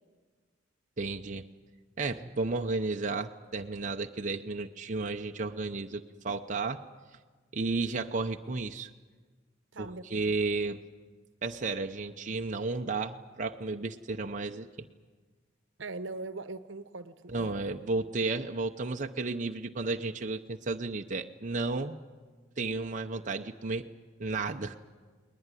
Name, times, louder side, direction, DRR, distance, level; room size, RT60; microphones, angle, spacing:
voice 1, 1.0-1.4 2.0-6.8 7.5-8.9 9.8-10.8 11.4-14.7 17.3-22.0 22.6-23.9 24.2-24.8, right 3 dB, 40° right, 0.8 m, -33 dB
voice 2, 9.7-10.3 15.8-17.6, right 3 dB, 75° right, 1.0 m, -41 dB
20.5 x 20.5 x 9.8 m
head